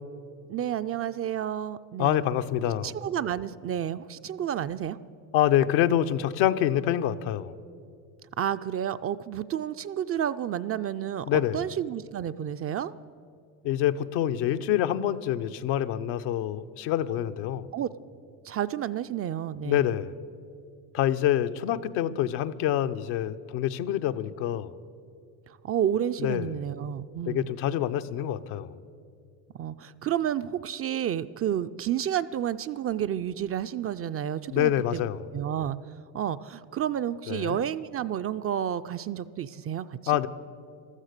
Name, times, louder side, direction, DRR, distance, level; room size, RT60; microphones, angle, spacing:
voice 1, 0.5-2.2 2.8-5.0 8.4-12.9 17.7-17.9 18.5-19.8 25.6-27.5 29.6-35.0 35.3-35.8 36.1-40.0, right 10 dB, 35° right, 12 dB, 0.4 m, -30 dB
voice 2, 2.0-2.9 5.3-7.5 11.3-11.6 13.6-17.7 19.6-20.2 20.9-24.7 26.2-26.6 27.3-28.7 34.5-35.3 37.3-37.6 40.1-40.3, left 11 dB, 75° left, 10 dB, 0.7 m, -26 dB
15.0 x 13.0 x 6.6 m, 2.4 s
supercardioid pair, 85°, 44 cm